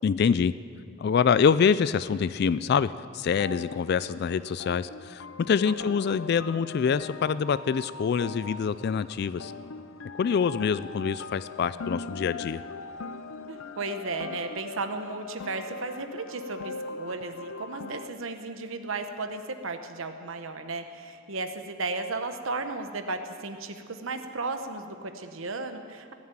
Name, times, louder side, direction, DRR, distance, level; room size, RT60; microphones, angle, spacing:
voice 1, 0.0-0.5 1.0-9.5 10.2-12.6, left 6 dB, 50° left, 15 dB, 0.3 m, -25 dB
sound 1, 3.3-18.1, left 4 dB, 80° left, 0.7 m, -41 dB
voice 2, 5.6-6.2 13.5-26.1, right 3 dB, 80° right, 7 dB, 1.0 m, -35 dB
19.0 x 7.4 x 9.0 m, 2.3 s
head